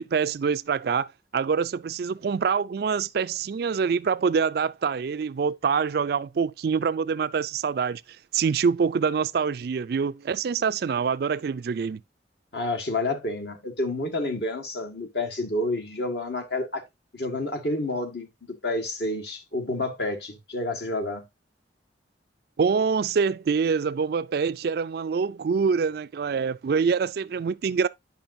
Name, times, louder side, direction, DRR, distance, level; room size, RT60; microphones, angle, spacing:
voice 1, 0.0-8.0 8.3-12.0 22.6-27.9, right 6 dB, 55° right, 0.3 m, -25 dB
voice 2, 12.5-16.8 17.1-21.2, left 2 dB, 65° left, 1.6 m, -29 dB
8.9 x 5.8 x 2.6 m
head